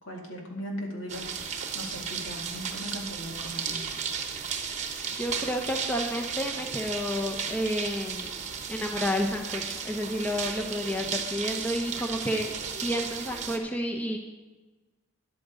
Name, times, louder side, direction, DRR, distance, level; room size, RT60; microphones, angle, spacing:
voice 1, 0.0-3.8, equal, 70° left, 0 dB, 2.2 m, -38 dB
sound 1, 1.1-13.6, right 6 dB, 35° right, 1.0 m, -34 dB
voice 2, 5.2-8.4 8.7-12.5 12.8-14.2, equal, 10° left, 1 dB, 0.8 m, -30 dB
13.0 x 11.0 x 3.9 m, 1.2 s
head